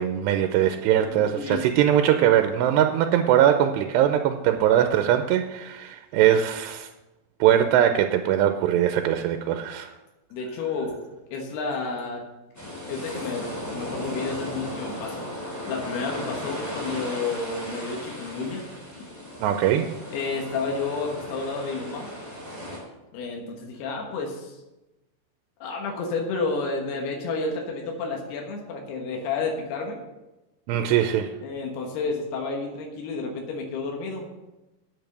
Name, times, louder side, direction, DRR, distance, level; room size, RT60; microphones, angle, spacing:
voice 1, 0.0-6.9 7.4-9.9 19.4-19.9 30.7-31.3, right 10 dB, 90° right, 7 dB, 2.8 m, -21 dB
voice 2, 0.9-1.6 10.3-11.0 11.3-12.2 12.9-15.3 15.7-18.7 20.1-22.1 23.1-24.6 25.6-30.0 31.4-34.3, left 4 dB, 75° left, 1 dB, 3.4 m, -31 dB
sound 1, 12.5-22.8, left 1 dB, 5° left, 2.1 m, -36 dB
9.2 x 8.1 x 6.6 m, 1.0 s
omnidirectional pair, 4.8 m